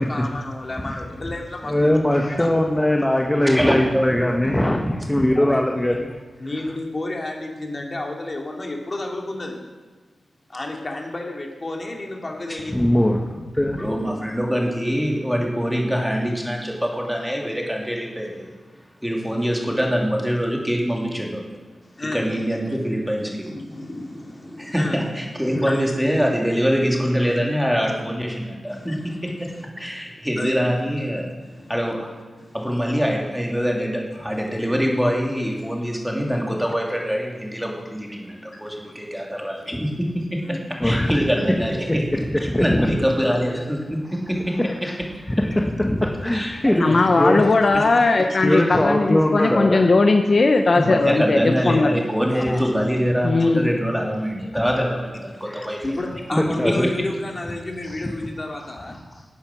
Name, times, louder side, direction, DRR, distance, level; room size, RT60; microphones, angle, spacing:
voice 1, 0.0-2.5 5.3-5.6 6.4-9.6 10.5-12.8 13.8-13.9 22.0-22.3 23.4-25.0 25.4-25.9 28.7-29.9 30.4-30.5 31.4-31.8 32.4-32.6 38.2-38.9 39.6-39.7 40.4-40.6 45.5-45.6 46.3-46.5 47.6-47.9 48.3-48.5 52.3-52.7 55.3-55.4 55.8-59.0, left 2 dB, 40° left, 1 dB, 2.7 m, -32 dB
voice 2, 1.7-4.8 5.1-6.1 12.7-13.8 40.8-41.2 41.5-41.6 41.9-43.0 44.6-44.9 45.3-46.8 47.1-47.5 48.4-49.9 55.5-55.7 56.6-56.9 59.1-59.2, left 1 dB, 15° left, 1 dB, 1.3 m, -21 dB
voice 3, 3.4-4.0 12.5-12.6 13.8-18.6 19.0-21.4 22.1-23.5 24.5-29.1 29.8-31.3 31.7-32.1 32.5-40.6 40.8-42.1 42.6-44.6 45.2-45.3 46.3-47.0 47.7-47.8 50.7-55.8 56.3-56.9, equal, ahead, -1 dB, 3.0 m, -24 dB
voice 4, 46.8-51.9 53.2-53.8, left 3 dB, 55° left, 5 dB, 0.9 m, -18 dB
12.0 x 8.7 x 6.2 m, 1.4 s
cardioid pair, 45°, 0 cm